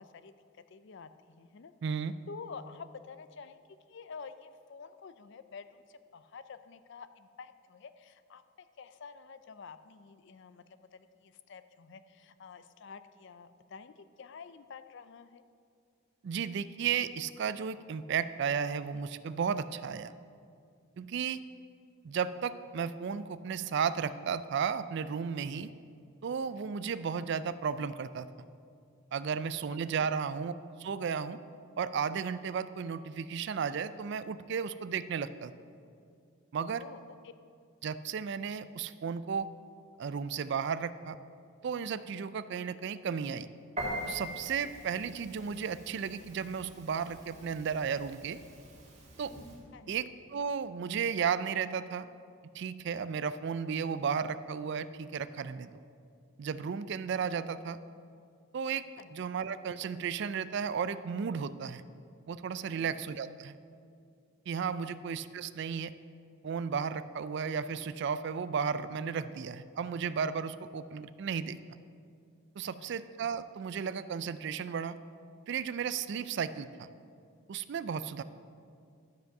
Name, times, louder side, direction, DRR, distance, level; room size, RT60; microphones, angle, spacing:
voice 1, 0.0-1.7 2.3-3.6 3.9-15.4 25.4-25.8 29.7-30.2 36.8-37.3 49.7-49.9 59.0-59.1 62.6-63.0 64.8-65.0 72.6-73.0, left 5 dB, 55° left, 12 dB, 0.4 m, -49 dB
voice 2, 1.8-2.1 16.2-20.1 21.0-21.4 22.0-25.7 26.2-28.3 29.1-30.5 30.8-31.4 31.8-35.5 36.5-36.8 37.8-39.5 40.0-41.2 41.6-43.5 44.1-48.4 49.2-49.3 49.9-52.1 52.5-55.7 56.4-57.8 58.5-58.8 59.1-61.8 62.3-63.5 64.5-65.9 66.4-71.6 72.6-75.0 75.5-76.9 77.5-78.2, right 6 dB, 55° right, 14 dB, 0.3 m, -34 dB
Piano, 43.8-49.6, right 1 dB, 35° right, 1.5 m, -43 dB
12.0 x 5.3 x 6.6 m, 2.4 s
head